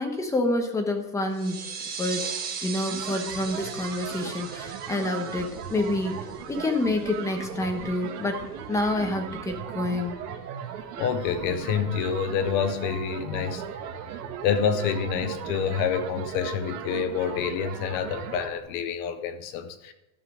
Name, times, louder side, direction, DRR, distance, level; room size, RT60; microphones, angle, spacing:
voice 1, 0.0-1.6 2.0-2.2 2.6-6.2 6.5-10.2, left 2 dB, 5° left, 3 dB, 1.0 m, -28 dB
sound 1, 1.3-6.7, right 6 dB, 20° right, 1.3 m, -38 dB
sound 2, 2.8-18.6, right 8 dB, 80° right, 1.8 m, -37 dB
voice 2, 11.0-13.6 14.4-19.9, left 7 dB, 25° left, 10 dB, 0.3 m, -27 dB
12.5 x 5.8 x 7.2 m, 0.97 s
cardioid pair, 175°, 46 cm